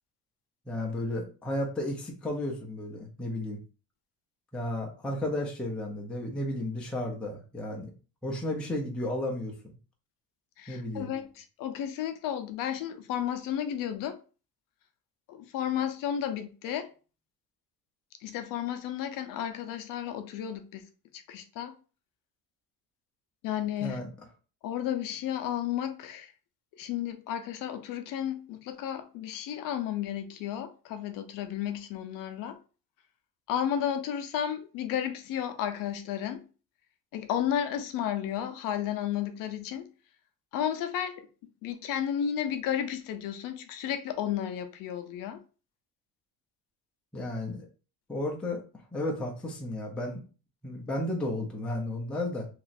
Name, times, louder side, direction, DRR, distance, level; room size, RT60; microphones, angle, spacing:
voice 1, 0.7-3.6 4.5-7.9 8.2-9.5 10.7-11.1 23.8-24.1 47.1-47.7 48.1-48.6 48.9-50.2 50.6-52.5, left 1 dB, 5° left, 0.4 m, -33 dB
voice 2, 10.6-14.2 15.3-16.9 18.2-20.8 21.1-21.7 23.4-24.0 24.6-26.3 26.8-32.6 33.5-36.5 37.1-39.9 40.5-41.3 41.6-45.4, left 10 dB, 55° left, 0.5 m, -33 dB
3.0 x 2.5 x 4.1 m
cardioid pair, 180°, 39 cm